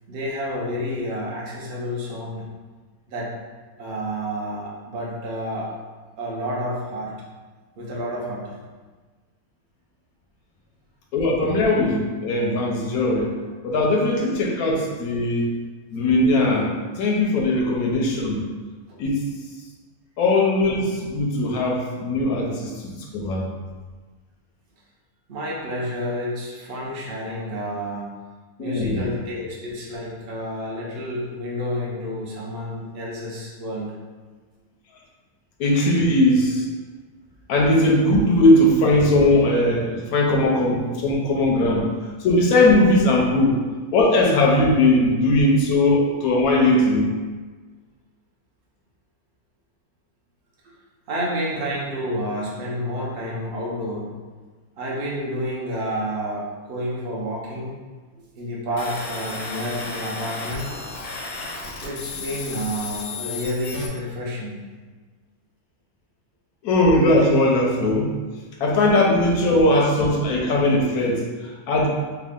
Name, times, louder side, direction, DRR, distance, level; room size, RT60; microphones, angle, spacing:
voice 1, 0.1-2.5 3.1-3.3 3.8-5.7 6.2-7.2 7.8-8.6 18.9-19.0 22.1-22.2 25.3-28.1 28.6-34.0 50.6-50.7 51.1-54.1 54.8-57.7 58.4-60.8 61.8-64.6 69.1-69.2, equal, 50° right, -4 dB, 0.8 m, -29 dB
voice 2, 11.1-13.3 13.6-15.5 15.9-18.4 19.0-19.2 20.2-23.5 28.6-29.0 35.6-36.6 37.5-41.9 42.2-43.6 43.9-47.1 66.6-68.2 68.6-71.9, left 1 dB, 85° left, -1 dB, 1.1 m, -19 dB
sound 1, 58.8-63.9, left 4 dB, 65° left, 0.8 m, -34 dB
3.5 x 2.2 x 3.6 m, 1.4 s
omnidirectional pair, 1.6 m